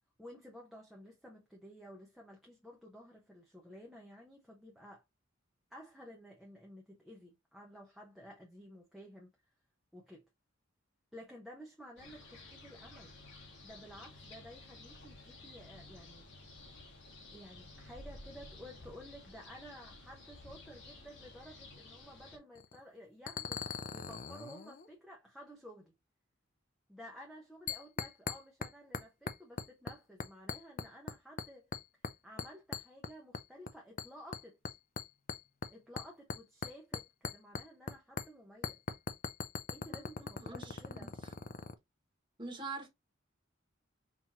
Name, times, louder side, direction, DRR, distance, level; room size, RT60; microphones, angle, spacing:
voice 1, 0.2-5.0 5.7-9.3 9.9-10.2 11.1-13.1 13.6-16.4 17.3-23.7 23.9-25.9 26.9-31.7 32.2-34.6 35.7-38.8 39.7-41.2, equal, ahead, 0.9 m, -53 dB
sound 1, 12.0-22.4, left 2 dB, 65° left, 1.7 m, -53 dB
sound 2, 22.5-22.8 23.3-24.9 27.7-28.7 28.9-29.9 30.2-31.1 31.4-32.1 32.4-33.7 34.0-37.9 38.2-38.3 38.6-41.7, left 5 dB, 40° left, 0.5 m, -40 dB
voice 2, 39.9-41.1 42.4-42.9, right 3 dB, 25° right, 1.5 m, -45 dB
5.7 x 3.0 x 2.9 m
head